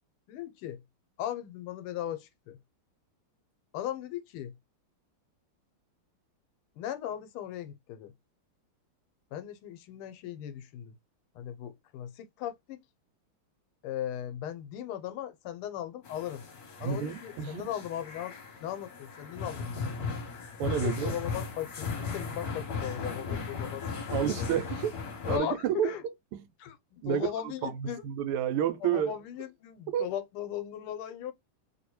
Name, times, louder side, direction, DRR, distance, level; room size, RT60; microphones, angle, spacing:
voice 1, 0.3-0.8 1.2-2.6 3.7-4.5 6.8-8.1 9.3-10.9 11.4-12.8 13.8-16.4 16.8-20.0 20.8-24.5 25.3-26.0 26.6-28.0 28.8-31.3, left 11 dB, 85° left, 1.5 m, -38 dB
sound 1, 16.0-25.4, left 5 dB, 55° left, 1.2 m, -37 dB
voice 2, 16.8-17.7 20.6-21.2 24.1-24.9 25.3-26.4 27.0-29.1 29.9-30.1, right 9 dB, 85° right, 1.5 m, -30 dB
3.3 x 2.7 x 2.9 m
omnidirectional pair, 2.4 m